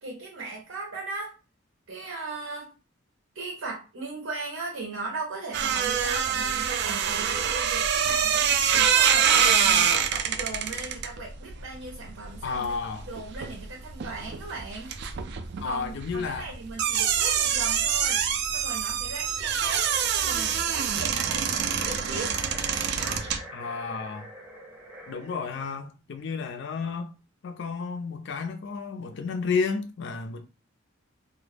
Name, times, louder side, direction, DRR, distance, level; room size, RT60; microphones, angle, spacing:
voice 1, 0.0-1.3 1.9-2.7 3.3-12.7 13.1-14.9 15.6-18.2 18.5-22.4 23.0-23.2, right 3 dB, 80° right, 0.7 m, -38 dB
sound 1, 5.5-13.6 13.9-23.4, right 8 dB, 55° right, 0.3 m, -25 dB
voice 2, 12.4-13.1 15.6-16.5 23.5-24.3 25.1-27.1 27.4-30.5, left 5 dB, 60° left, 0.4 m, -32 dB
sound 2, 19.3-25.7, right 1 dB, 10° right, 0.6 m, -43 dB
2.1 x 2.0 x 3.2 m
head